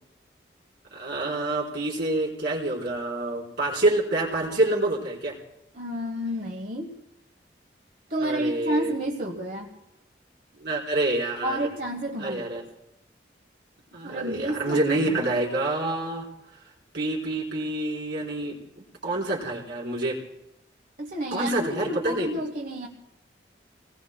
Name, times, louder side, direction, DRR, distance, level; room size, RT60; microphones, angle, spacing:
voice 1, 0.9-5.4 8.2-8.9 10.6-11.6 12.2-12.6 13.9-16.3 16.9-20.2 21.3-22.3, right 2 dB, 70° right, -4 dB, 4.0 m, -27 dB
voice 2, 5.7-7.0 8.1-9.7 11.4-12.5 14.0-15.2 21.0-22.9, right 1 dB, 50° right, 1 dB, 1.2 m, -30 dB
28.0 x 19.5 x 2.2 m, 0.88 s
head